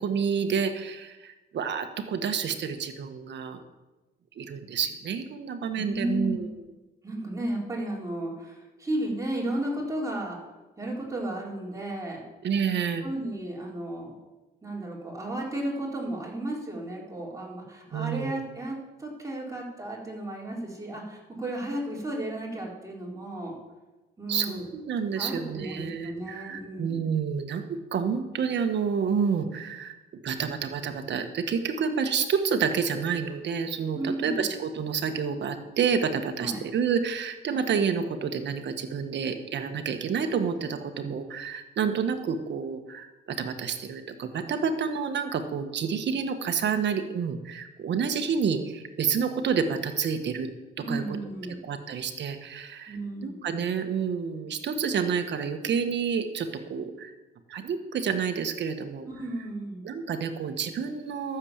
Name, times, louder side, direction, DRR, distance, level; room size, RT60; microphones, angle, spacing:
voice 1, 0.0-3.6 4.4-6.6 12.4-13.1 17.9-18.4 24.3-29.9 30.2-50.5 50.9-51.2 51.6-53.0 53.2-57.1 57.5-59.1 59.8-61.4, right 6 dB, 60° right, 7 dB, 1.4 m, -29 dB
voice 2, 5.7-6.4 7.0-10.4 10.8-12.2 13.0-14.1 14.6-23.6 24.2-24.7 25.2-27.1 33.9-34.4 36.4-36.6 50.8-51.6 52.9-53.5 59.1-59.9, right 1 dB, 15° right, -3 dB, 4.2 m, -34 dB
13.5 x 7.4 x 7.3 m, 1.1 s
cardioid pair, 90°, 20 cm